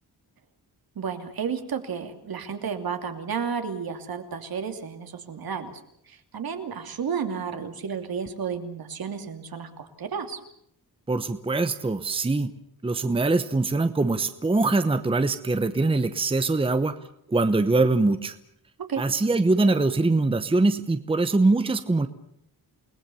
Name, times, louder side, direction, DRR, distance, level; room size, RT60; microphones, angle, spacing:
voice 1, 0.9-5.7 6.1-10.4 18.9-19.0, right 6 dB, 65° right, 6 dB, 2.9 m, -32 dB
voice 2, 11.1-12.5 12.8-16.9 17.3-18.3 19.0-22.1, right 3 dB, 15° right, 10 dB, 0.9 m, -23 dB
29.0 x 19.5 x 7.1 m, 0.71 s
wide cardioid pair, 160°, 38 cm